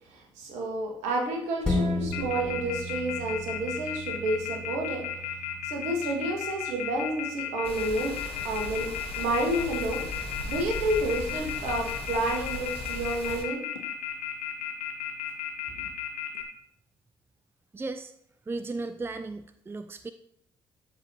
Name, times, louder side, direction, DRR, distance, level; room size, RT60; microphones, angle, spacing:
voice 1, 0.1-5.0 5.6-8.1 8.4-8.9 9.2-10.0 10.5-13.6, right 1 dB, 65° right, 1 dB, 1.6 m, -30 dB
sound 1, 1.6-10.5 10.9-11.0, left 1 dB, 5° left, 2.9 m, -36 dB
Telephone, 2.1-16.4, left 11 dB, 75° left, 0.8 m, -34 dB
sound 2, 7.6-13.4, left 2 dB, 50° left, 1.3 m, -38 dB
voice 2, 17.7-18.1 18.5-20.1, right 3 dB, 20° right, 11 dB, 0.4 m, -35 dB
13.5 x 5.0 x 2.7 m, 0.69 s
figure-of-eight pair, 45°, 12 cm